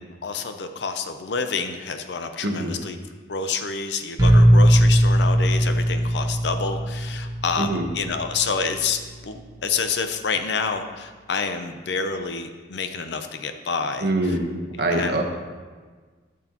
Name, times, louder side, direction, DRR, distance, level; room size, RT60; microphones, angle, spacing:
voice 1, 0.2-3.0 3.3-14.4 14.9-15.2, left 5 dB, 60° left, 7 dB, 0.6 m, -28 dB
voice 2, 2.4-2.7 7.6-7.8 14.0-14.5 14.8-15.2, right 2 dB, 55° right, 2 dB, 1.1 m, -23 dB
sound 1, 4.2-10.0, equal, 20° right, 1.1 m, -20 dB
12.5 x 6.1 x 3.0 m, 1.4 s
head